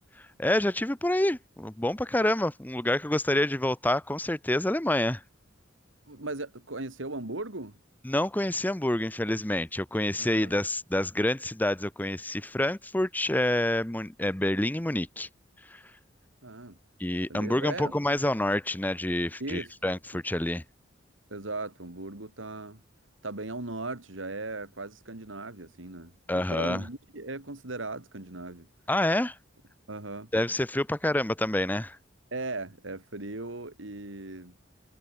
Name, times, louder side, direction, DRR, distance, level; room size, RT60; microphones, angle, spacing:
voice 1, 0.2-5.2 8.0-15.3 15.7-15.8 17.0-20.6 26.3-26.8 28.9-29.4 30.3-32.0, left 1 dB, 10° left, 0.8 m, -27 dB
voice 2, 6.1-7.8 10.2-10.6 16.4-16.8 17.3-17.9 19.4-19.7 20.1-20.2 21.3-22.8 23.2-28.7 29.9-30.3 32.3-34.5, right 2 dB, 85° right, 2.7 m, -38 dB
head